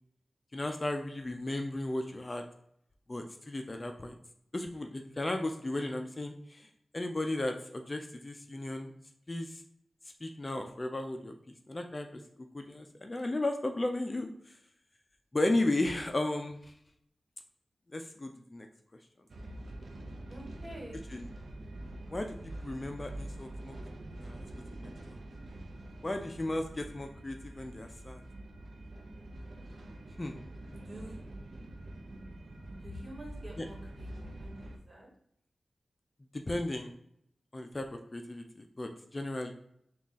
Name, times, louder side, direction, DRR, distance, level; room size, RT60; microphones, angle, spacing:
voice 1, 0.5-2.4 3.1-4.1 4.5-8.9 9.3-9.6 10.2-12.1 12.4-14.5 15.3-16.7 17.9-18.7 21.1-21.3 22.1-22.4 22.6-23.7 24.2-24.5 24.7-25.2 26.0-28.2 30.2-30.4 33.6-33.7 36.3-36.9 37.5-39.5, left 2 dB, 35° left, 4 dB, 0.4 m, -35 dB
sound 1, 19.3-34.8, right 1 dB, 70° right, 0.5 m, -45 dB
voice 2, 20.3-21.0 30.7-31.4 32.8-35.1, equal, 35° right, -3 dB, 1.5 m, -47 dB
3.6 x 2.3 x 3.9 m, 0.72 s
cardioid pair, 55°, 0 cm